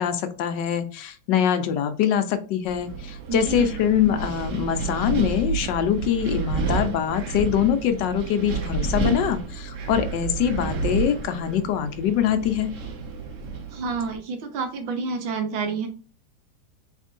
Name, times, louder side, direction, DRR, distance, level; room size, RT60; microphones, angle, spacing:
voice 1, 0.0-12.7, left 9 dB, 75° left, 9 dB, 1.2 m, -24 dB
Wind, 2.6-14.2, right 4 dB, 55° right, 0.9 m, -30 dB
voice 2, 3.3-3.7 13.7-15.9, right 5 dB, 90° right, 5 dB, 1.7 m, -29 dB
4.4 x 3.6 x 2.5 m, 0.39 s
omnidirectional pair, 2.1 m